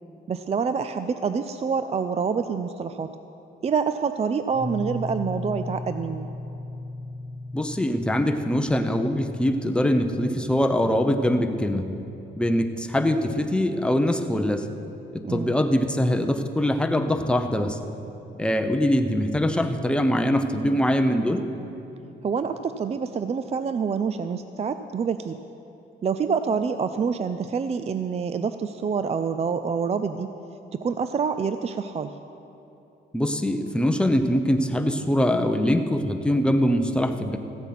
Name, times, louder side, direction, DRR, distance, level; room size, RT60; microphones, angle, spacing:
voice 1, 0.3-3.1 3.6-6.3 15.2-15.6 22.2-25.4 26.0-30.3 30.7-32.1, right 6 dB, 30° right, 10 dB, 0.4 m, -27 dB
sound 1, 4.5-14.1, left 2 dB, 30° left, 2.7 m, -38 dB
voice 2, 7.5-11.8 12.4-14.7 15.1-17.8 18.4-21.4 33.1-37.4, left 1 dB, 5° left, 6 dB, 0.8 m, -23 dB
15.0 x 8.0 x 5.9 m, 2.9 s
cardioid pair, 90°, 20 cm